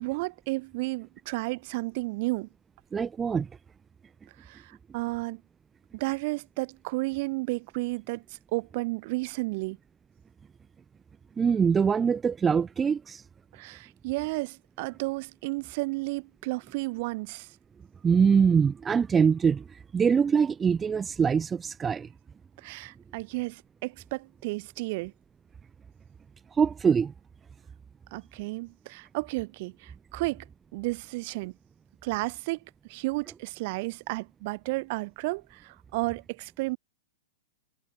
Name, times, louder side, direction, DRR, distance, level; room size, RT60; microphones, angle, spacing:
voice 1, 0.0-2.5 4.4-5.4 5.9-9.8 13.5-17.5 22.6-25.1 28.1-30.4 30.7-31.5 32.0-32.6 32.9-36.8, right 24 dB, 45° right, 6.6 m, -32 dB
voice 2, 2.9-3.5 11.4-13.2 18.0-22.1 26.5-27.1, right 6 dB, 15° right, 3.3 m, -23 dB
figure-of-eight pair, 110°, 0 cm